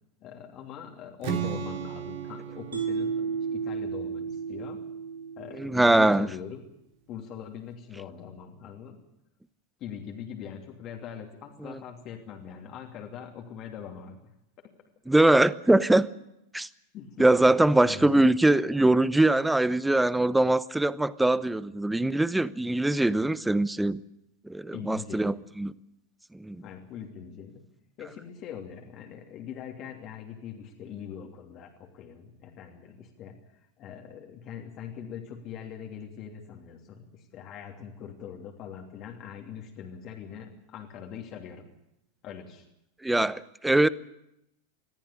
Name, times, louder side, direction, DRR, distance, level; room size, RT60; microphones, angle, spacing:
voice 1, 0.2-4.8 5.4-6.6 7.1-9.0 9.8-14.3 14.6-14.7 16.9-17.3 17.6-18.1 24.7-25.4 26.6-27.6 28.0-33.4 33.8-41.7 42.2-42.7, left 8 dB, 45° left, 1 dB, 2.9 m, -42 dB
Strum, 1.2-5.3, right 9 dB, 60° right, 3.1 m, -37 dB
Mallet percussion, 2.7-6.0, right 6 dB, 85° right, 2.8 m, -33 dB
voice 2, 5.6-6.3 11.6-11.8 15.1-16.1 16.5-16.7 17.2-24.0 24.4-25.7 26.3-26.6 43.0-43.9, right 2 dB, 5° right, 17 dB, 0.8 m, -22 dB
21.5 x 14.5 x 9.9 m, 0.83 s
hypercardioid pair, 95°, 0 cm